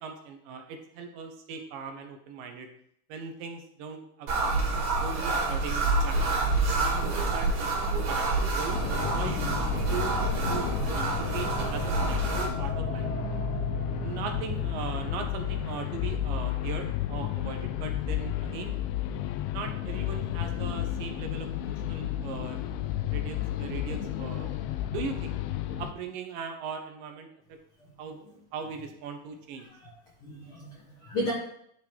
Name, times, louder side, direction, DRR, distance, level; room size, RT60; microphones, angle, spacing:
voice 1, 0.0-2.7 3.1-6.2 6.7-8.8 9.1-10.2 10.5-13.1 14.0-18.8 19.5-22.7 23.1-24.6 24.9-25.3 25.8-27.3 28.0-28.2 28.5-29.7, right 5 dB, 75° right, 5 dB, 2.4 m, -39 dB
sound 1, 4.3-12.5, right 3 dB, 60° right, 2.8 m, -28 dB
sound 2, 7.1-17.9, right 5 dB, 40° right, 1.3 m, -42 dB
sound 3, 8.7-25.9, left 12 dB, 85° left, 2.3 m, -32 dB
voice 2, 29.6-29.9 30.2-31.3, left 1 dB, 60° left, -4 dB, 1.4 m, -34 dB
10.5 x 3.7 x 4.5 m, 0.69 s
omnidirectional pair, 4.1 m